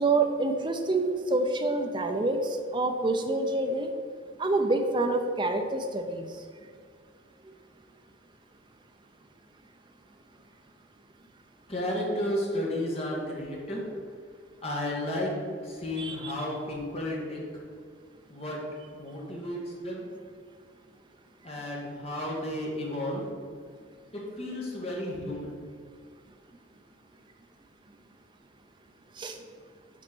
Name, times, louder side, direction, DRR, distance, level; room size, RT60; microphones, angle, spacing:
voice 1, 0.0-2.4 2.7-3.9 4.4-6.3 16.0-16.3 29.2-29.3, right 2 dB, 25° right, 5 dB, 0.5 m, -27 dB
voice 2, 11.7-13.9 14.6-15.4 15.6-17.4 18.3-18.6 18.9-20.1 21.4-23.2 24.1-25.5, left 1 dB, 30° left, -3 dB, 1.5 m, -33 dB
6.2 x 4.2 x 6.0 m, 2.1 s
head